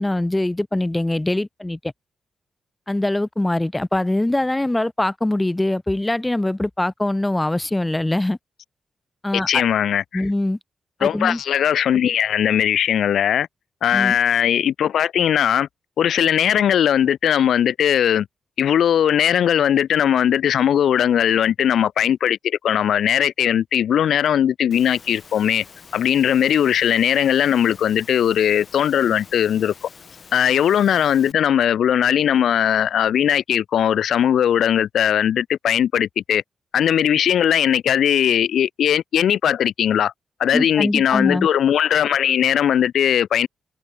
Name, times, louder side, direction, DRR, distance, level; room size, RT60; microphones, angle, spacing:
voice 1, 0.0-1.8 2.9-8.4 9.2-9.6 10.1-10.6 11.0-11.4 13.9-14.2 40.5-41.5, left 1 dB, 15° left, 0.8 m, -22 dB
voice 2, 9.3-10.2 11.0-13.5 13.8-15.7 16.0-18.3 18.6-25.6 25.9-29.7 30.3-36.4 36.7-40.1 40.4-43.5, left 9 dB, 80° left, 0.6 m, -19 dB
Engine / Mechanisms, 24.7-31.3, left 5 dB, 50° left, 2.6 m, -46 dB
cardioid pair, 85°, 0 cm